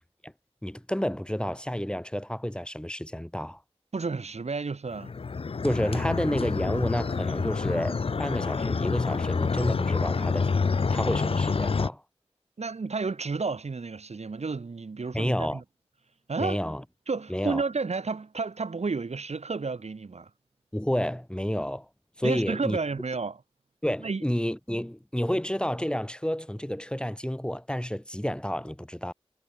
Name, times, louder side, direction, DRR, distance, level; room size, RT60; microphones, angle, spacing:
voice 1, 0.6-3.6 5.6-10.5 10.9-12.0 15.1-15.6 16.4-16.8 17.3-17.6 20.7-21.9 22.2-22.8 23.8-29.1, equal, 10° left, 2.6 m, -30 dB
voice 2, 3.9-5.1 12.6-15.6 16.3-16.6 17.1-20.3 22.2-23.4 24.0-24.2, right 4 dB, 80° right, 2.3 m, -31 dB
sound 1, 4.9-11.9, left 4 dB, 60° left, 0.5 m, -27 dB
cardioid pair, 40°, 11 cm